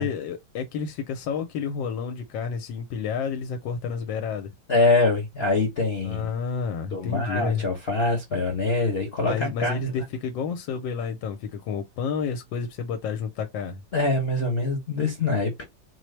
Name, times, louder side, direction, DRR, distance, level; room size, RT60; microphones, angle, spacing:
voice 1, 0.0-4.5 6.0-7.6 9.2-13.8, left 6 dB, 90° left, 1.4 m, -30 dB
voice 2, 4.7-6.3 6.9-10.0 13.9-15.6, left 3 dB, 45° left, 0.8 m, -24 dB
4.5 x 2.0 x 3.1 m
omnidirectional pair, 2.0 m